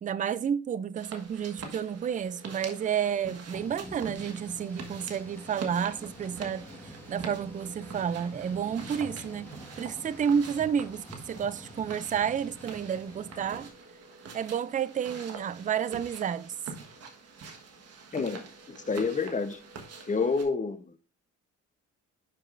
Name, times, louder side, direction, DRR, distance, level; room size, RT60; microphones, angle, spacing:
voice 1, 0.0-9.5 9.8-13.7 14.3-16.5, right 8 dB, 25° right, 0.4 m, -31 dB
sound 1, 1.0-20.4, right 4 dB, 55° right, 1.4 m, -45 dB
Thunder / Rain, 3.5-13.7, equal, 5° left, 1.6 m, -48 dB
voice 2, 18.1-19.6 20.1-21.0, left 4 dB, 25° left, 0.8 m, -29 dB
10.5 x 4.9 x 2.5 m
cardioid pair, 90°, 30 cm